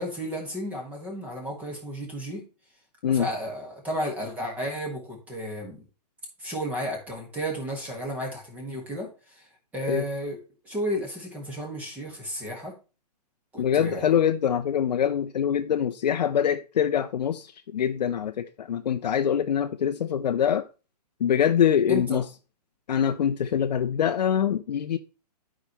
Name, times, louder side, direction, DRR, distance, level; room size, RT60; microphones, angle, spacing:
voice 1, 0.0-2.4 3.1-5.8 6.4-10.4 10.6-12.7 13.5-14.2 21.9-22.2, equal, 5° right, 1.6 m, -33 dB
voice 2, 13.6-20.6 21.2-22.2 22.9-25.0, left 9 dB, 90° left, 0.6 m, -24 dB
11.5 x 4.8 x 3.0 m
hypercardioid pair, 165°, 21 cm